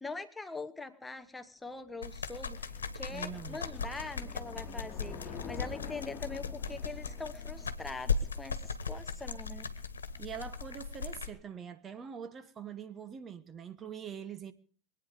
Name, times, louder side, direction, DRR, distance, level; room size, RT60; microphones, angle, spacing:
voice 1, 0.0-9.7, left 3 dB, 10° left, 1.0 m, -43 dB
sound 1, 1.7-9.0, left 7 dB, 30° left, 2.0 m, -48 dB
sound 2, 2.0-11.3, left 5 dB, 85° left, 1.3 m, -38 dB
voice 2, 3.0-3.6 10.2-14.5, right 7 dB, 30° right, 1.3 m, -44 dB
24.0 x 9.3 x 5.1 m
hypercardioid pair, 90°, 0 cm